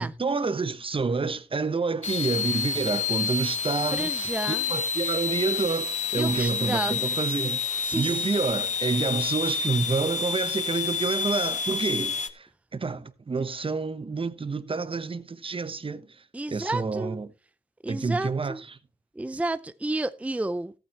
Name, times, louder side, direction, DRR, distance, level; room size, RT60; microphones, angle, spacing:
voice 1, 0.0-16.2 16.5-17.3 17.9-18.8, right 4 dB, 30° right, 1.0 m, -28 dB
sound 1, 2.0-12.3, left 6 dB, 45° left, 1.1 m, -29 dB
voice 2, 3.9-4.7 6.1-7.0 7.8-8.2 16.3-17.2 17.8-18.6 19.2-20.7, right 2 dB, 10° right, 0.6 m, -31 dB
14.0 x 9.1 x 3.0 m
supercardioid pair, 60°, 17 cm